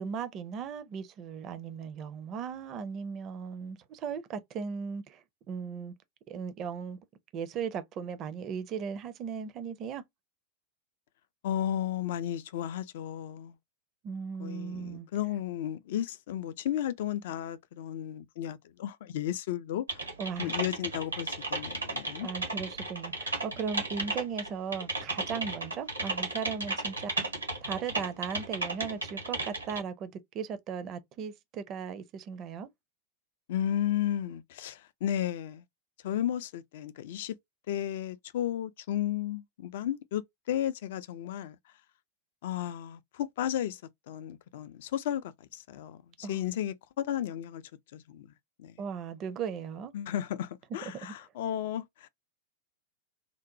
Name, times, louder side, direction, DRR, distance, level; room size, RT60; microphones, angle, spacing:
voice 1, 0.0-5.2 5.5-5.9 6.3-7.0 7.3-10.0 14.0-15.1 20.2-20.6 22.2-27.2 27.6-32.7 46.2-46.4 48.8-49.9 50.9-51.1, right 6 dB, 35° right, 0.4 m, -37 dB
voice 2, 11.4-13.6 14.4-19.8 20.4-22.3 33.5-35.6 36.0-37.4 37.7-41.6 42.4-43.8 44.1-47.6 47.9-48.3 48.6-48.8 49.9-52.1, left 11 dB, 55° left, 0.3 m, -34 dB
Typing, 19.9-29.8, right 2 dB, 80° right, 0.8 m, -34 dB
2.9 x 2.0 x 2.5 m
figure-of-eight pair, 90°, 0 cm